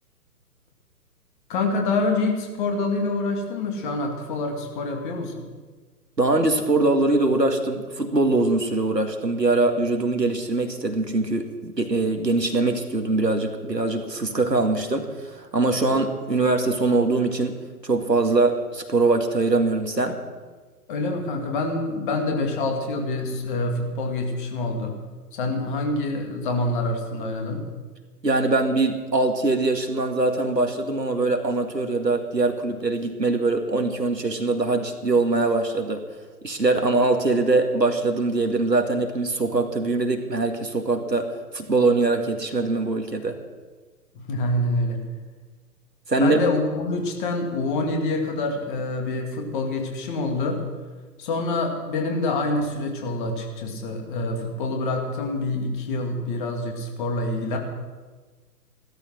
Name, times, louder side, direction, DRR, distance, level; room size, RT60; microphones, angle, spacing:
voice 1, 1.5-5.5 15.8-15.9 20.9-24.9 25.3-27.7 44.1-45.0 46.2-50.6 51.2-57.6, left 2 dB, 30° left, 3 dB, 2.5 m, -26 dB
voice 2, 6.2-20.2 28.2-36.0 36.4-43.4 46.1-46.4, right 2 dB, 85° right, 5 dB, 2.1 m, -22 dB
15.5 x 12.5 x 6.3 m, 1.4 s
figure-of-eight pair, 130°, 48 cm